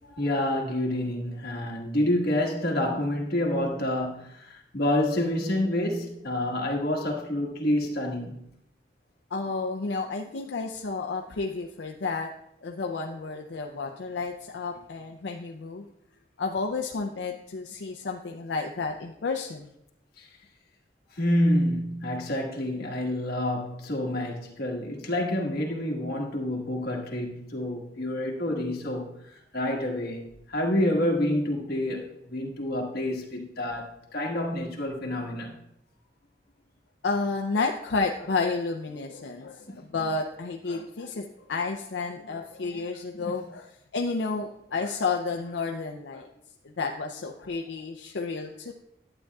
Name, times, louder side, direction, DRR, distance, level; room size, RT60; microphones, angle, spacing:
voice 1, 0.2-8.4 20.2-20.3 21.1-29.0 29.5-30.2 30.5-33.9 34.1-35.5 43.1-43.3, left 1 dB, 60° left, 1.5 m, -28 dB
voice 2, 9.3-12.3 12.6-15.9 16.4-19.7 31.6-31.7 37.0-46.3 46.6-48.7, left 4 dB, 85° left, 0.5 m, -31 dB
11.5 x 8.7 x 2.3 m
head